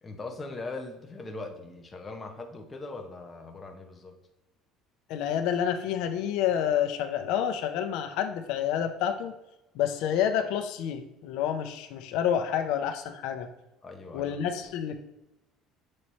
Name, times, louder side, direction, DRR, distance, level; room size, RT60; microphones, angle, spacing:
voice 1, 0.0-4.1 13.8-14.4, left 3 dB, 15° left, 3 dB, 0.7 m, -40 dB
voice 2, 5.1-9.3 9.7-13.5 14.1-15.0, left 9 dB, 70° left, 6 dB, 0.5 m, -28 dB
7.4 x 3.1 x 4.1 m, 0.93 s
cardioid pair, 175°, 0 cm